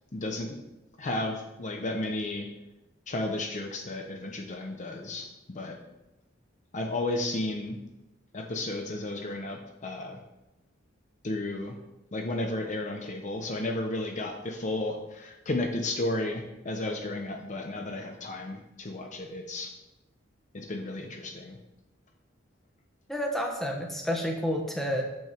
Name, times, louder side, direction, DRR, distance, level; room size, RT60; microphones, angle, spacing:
voice 1, 0.1-0.6 1.0-2.5 3.1-5.8 6.7-7.8 8.3-10.2 11.2-11.8 12.1-19.7 20.5-21.6, left 2 dB, 40° left, 2 dB, 0.8 m, -33 dB
voice 2, 23.1-25.0, equal, ahead, 0 dB, 1.2 m, -30 dB
6.9 x 6.3 x 4.5 m, 0.97 s
head